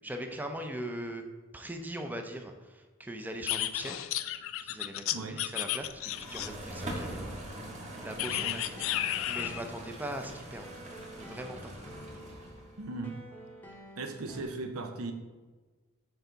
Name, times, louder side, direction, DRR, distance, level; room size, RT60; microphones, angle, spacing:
voice 1, 0.0-1.2 1.5-4.1 4.6-7.3 7.6-10.7 11.2-11.7, right 1 dB, 10° right, 5 dB, 0.5 m, -40 dB
sound 1, 3.5-6.7 8.2-9.7, left 13 dB, 65° left, 0.3 m, -33 dB
voice 2, 5.1-5.4 8.3-8.6 12.8-13.2 14.0-15.1, right 3 dB, 85° right, 6 dB, 0.7 m, -38 dB
sound 2, 5.8-12.8, right 1 dB, 35° right, 1.2 m, -43 dB
sound 3, 8.1-14.4, equal, 10° left, 0.8 m, -51 dB
6.7 x 4.6 x 3.9 m, 1.3 s
head